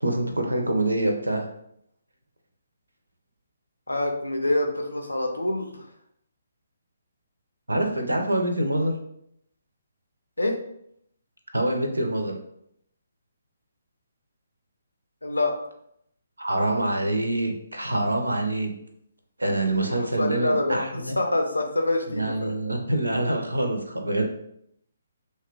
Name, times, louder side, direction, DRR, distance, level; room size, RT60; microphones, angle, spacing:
voice 1, 0.0-1.5 7.7-8.9 11.5-12.3 16.4-18.7 19.4-21.2 22.1-24.3, right 1 dB, 80° right, 3 dB, 0.5 m, -25 dB
voice 2, 3.9-5.8 10.4-10.6 15.2-15.6 19.8-22.6, left 2 dB, 80° left, 3 dB, 0.5 m, -26 dB
2.8 x 2.1 x 2.4 m, 0.73 s
figure-of-eight pair, 135°, 0 cm